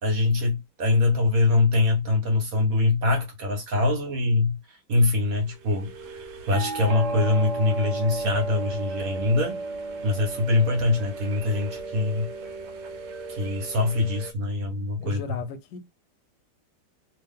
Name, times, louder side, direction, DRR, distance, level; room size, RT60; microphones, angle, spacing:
voice 1, 0.0-4.5 4.9-5.9 6.5-9.6 10.0-12.3 13.3-15.2, left 2 dB, 50° right, 1.3 m, -23 dB
sound 1, 5.5-14.3, right 3 dB, 75° right, 1.4 m, -34 dB
voice 2, 15.0-15.8, left 5 dB, 70° left, 1.1 m, -35 dB
2.8 x 2.8 x 3.6 m
omnidirectional pair, 2.2 m